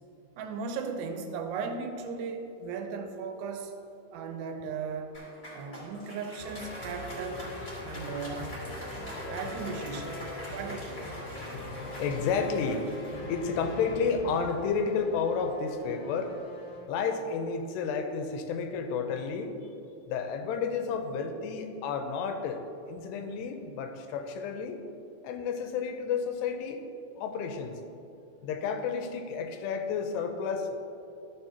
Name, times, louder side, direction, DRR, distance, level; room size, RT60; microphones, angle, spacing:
voice 1, 0.4-3.7 4.1-5.2 5.5-7.5 7.8-8.5 9.3-11.1, right 5 dB, 85° right, 4 dB, 2.7 m, -37 dB
Applause, 5.1-14.5, equal, 35° left, 1.3 m, -44 dB
sound 1, 6.4-16.9, left 2 dB, 65° left, 1.9 m, -42 dB
voice 2, 12.0-12.9 13.3-16.4 16.9-19.6 20.1-22.6 22.9-24.8 25.2-26.8 27.2-27.8 28.4-30.8, left 5 dB, 85° left, 6 dB, 2.7 m, -31 dB
13.5 x 6.8 x 2.8 m, 2.8 s
omnidirectional pair, 4.9 m